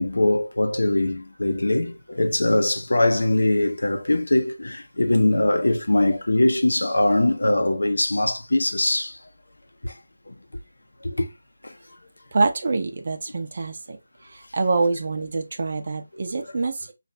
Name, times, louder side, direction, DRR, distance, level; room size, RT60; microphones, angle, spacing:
voice 1, 0.0-9.2 9.8-9.9 10.3-10.4 11.0-11.3 11.6-11.7, left 1 dB, 90° left, 0.8 m, -22 dB
voice 2, 12.3-14.0 14.2-16.9, right 3 dB, 35° right, 0.6 m, -25 dB
3.8 x 2.5 x 3.3 m
figure-of-eight pair, 175°, 0 cm